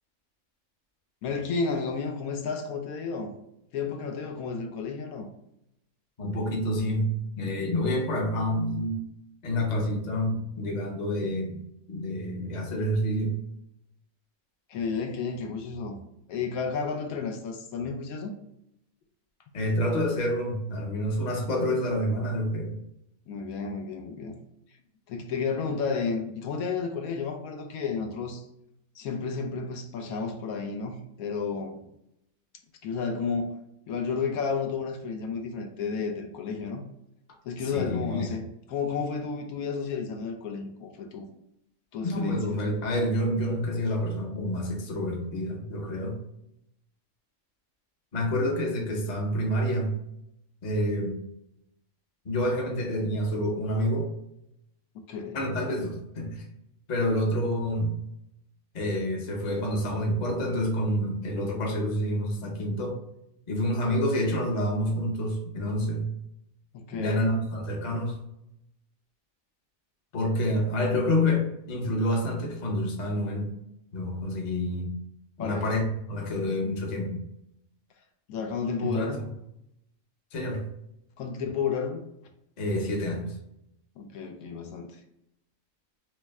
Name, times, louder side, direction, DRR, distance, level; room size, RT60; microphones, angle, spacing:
voice 1, 1.2-3.3 3.7-5.3 14.7-16.0 16.3-18.3 23.3-24.3 25.1-28.4 28.9-31.8 32.8-33.6 33.9-36.8 37.4-41.3 41.9-42.5 55.1-55.4 66.7-67.4 75.4-75.8 76.6-76.9 78.3-79.2 81.2-82.0 84.0-85.0, left 5 dB, 80° left, 4 dB, 1.1 m, -32 dB
voice 2, 6.2-9.0 9.4-11.6 11.9-13.4 19.5-22.7 37.6-38.3 42.0-46.2 48.1-49.9 50.6-51.2 52.2-54.1 55.3-56.5 56.9-57.9 58.7-63.0 63.5-66.1 66.9-68.2 70.1-73.5 73.9-74.9 75.4-77.1 78.8-79.2 80.3-80.6 82.6-83.3, left 1 dB, 40° left, 0 dB, 0.7 m, -28 dB
3.2 x 3.1 x 3.4 m, 0.81 s
omnidirectional pair, 1.5 m